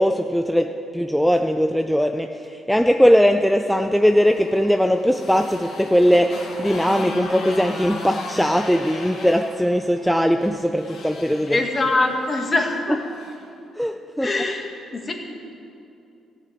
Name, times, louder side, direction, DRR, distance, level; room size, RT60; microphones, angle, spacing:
voice 1, 0.0-2.3 2.7-11.6 13.8-14.3, equal, ahead, 5 dB, 0.5 m, -19 dB
Motorcycle, 4.0-13.4, left 2 dB, 70° left, 2.3 m, -37 dB
voice 2, 11.5-13.0 14.2-14.7 14.9-15.1, left 2 dB, 30° left, 2 dB, 1.9 m, -22 dB
14.0 x 6.8 x 9.0 m, 2.6 s
cardioid pair, 90°, 0 cm